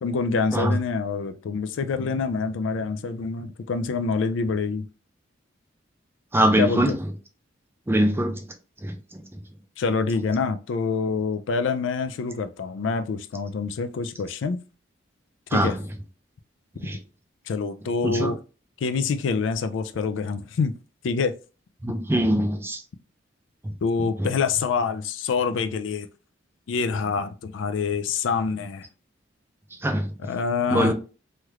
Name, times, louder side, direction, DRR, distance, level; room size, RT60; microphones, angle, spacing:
voice 1, 0.0-4.9 6.6-6.8 9.8-14.6 15.5-15.8 17.5-18.4 18.8-20.7 21.0-21.3 23.8-26.1 26.7-28.9 30.2-30.9, left 5 dB, 75° left, 0.4 m, -26 dB
voice 2, 6.3-6.9 7.9-8.4 8.8-8.9 15.5-15.7 16.8-17.0 18.0-18.3 21.8-22.8 24.2-24.3 29.8-30.1 30.7-30.9, right 1 dB, 10° right, 0.4 m, -22 dB
3.2 x 2.4 x 3.0 m
head